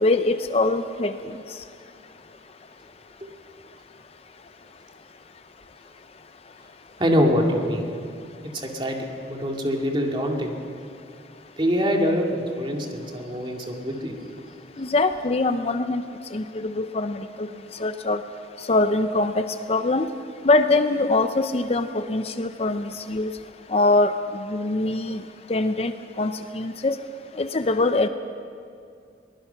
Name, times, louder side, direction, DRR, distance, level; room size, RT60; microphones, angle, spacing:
voice 1, 0.0-1.1 14.8-16.0 16.3-17.5 17.8-18.2 18.7-20.1 20.4-23.3 23.7-24.1 24.5-25.2 25.5-25.9 26.2-27.0 27.4-28.1, left 2 dB, 35° left, 9 dB, 0.6 m, -23 dB
voice 2, 7.0-7.9 8.5-9.0 9.2-10.8 11.6-14.1, equal, 25° right, 1 dB, 2.2 m, -24 dB
23.0 x 19.5 x 5.8 m, 2.4 s
head